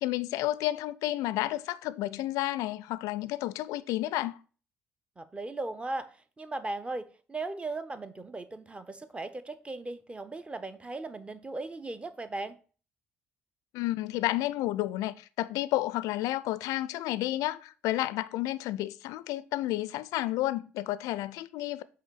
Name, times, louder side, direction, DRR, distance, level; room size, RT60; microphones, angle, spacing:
voice 1, 0.0-4.4 13.7-21.8, left 16 dB, 60° left, 0.4 m, -31 dB
voice 2, 5.2-12.6, right 2 dB, 15° right, 0.8 m, -37 dB
8.0 x 3.1 x 6.2 m
figure-of-eight pair, 50°, 6 cm